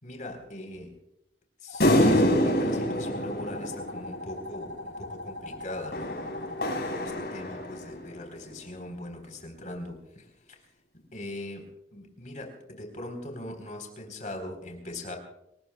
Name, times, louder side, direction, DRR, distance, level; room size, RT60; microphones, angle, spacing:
voice 1, 0.0-0.9 1.6-6.6 6.9-10.2 11.1-11.6 11.9-15.2, left 1 dB, 45° left, 3 dB, 4.0 m, -40 dB
sound 1, 1.7-7.1, left 2 dB, 90° left, 3.8 m, -40 dB
sound 2, 1.8-4.5 5.9-8.0, equal, 65° left, 6.4 m, -26 dB
29.5 x 19.5 x 2.3 m, 0.84 s
head